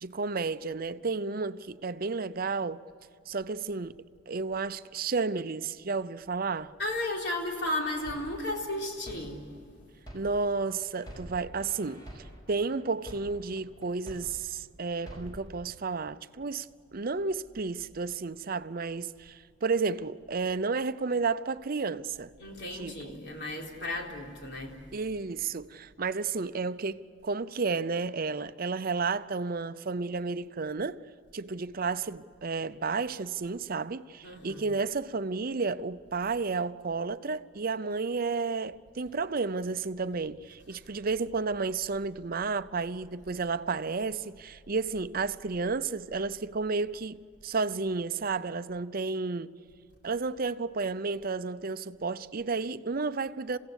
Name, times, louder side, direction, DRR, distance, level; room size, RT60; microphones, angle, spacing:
voice 1, 0.0-2.8 3.3-4.0 4.3-6.7 10.1-22.3 22.7-23.2 24.9-31.0 31.3-49.6 50.0-53.6, right 4 dB, 50° right, 0.6 m, -32 dB
voice 2, 6.8-9.4 22.4-24.8 34.2-34.6, left 1 dB, 60° left, 3.9 m, -34 dB
sound 1, 7.6-10.6 11.0-14.6 15.0-15.6, right 1 dB, 20° left, 5.5 m, -47 dB
28.0 x 16.5 x 8.2 m
head